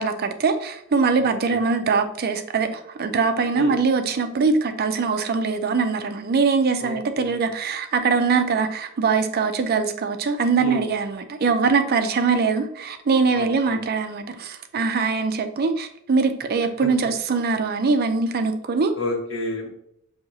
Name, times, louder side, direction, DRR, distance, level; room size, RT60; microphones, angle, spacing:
voice 1, 0.0-18.9, right 4 dB, 45° right, 0.4 m, -22 dB
voice 2, 1.2-1.6 3.5-3.7 6.8-7.5 10.6-10.8 13.3-13.8 19.0-19.7, left 1 dB, 65° left, 1.4 m, -31 dB
6.0 x 2.8 x 2.7 m
head